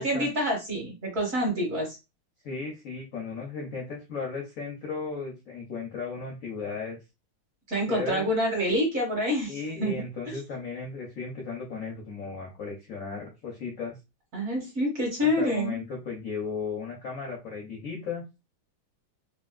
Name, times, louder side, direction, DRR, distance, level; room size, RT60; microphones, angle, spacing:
voice 1, 0.0-2.0 7.7-9.9 10.3-10.4 14.3-15.8, equal, 50° right, -1 dB, 1.2 m, -27 dB
voice 2, 2.4-7.0 7.9-8.3 9.5-14.0 15.2-18.2, left 4 dB, 70° left, 0 dB, 0.7 m, -35 dB
3.4 x 2.5 x 2.3 m, 0.26 s
omnidirectional pair, 2.3 m